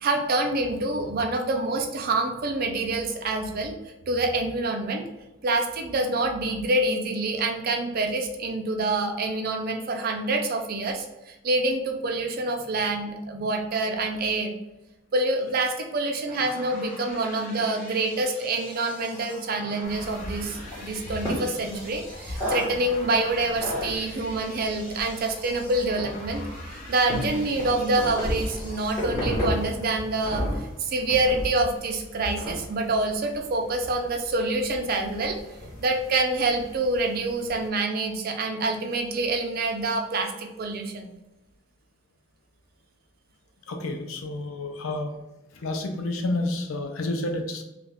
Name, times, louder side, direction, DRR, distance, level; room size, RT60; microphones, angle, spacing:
voice 1, 0.0-3.8 4.1-5.1 5.4-14.6 15.1-26.5 26.9-30.5 30.8-35.4 35.8-41.1, right 2 dB, 50° right, 3 dB, 0.4 m, -26 dB
sound 1, 16.3-29.1, left 1 dB, 40° left, 1.1 m, -44 dB
sound 2, 19.8-37.7, left 1 dB, 15° left, 1.2 m, -35 dB
voice 2, 43.7-45.2 45.5-47.6, left 2 dB, 85° left, 4 dB, 0.5 m, -30 dB
3.1 x 2.4 x 3.4 m, 0.98 s
head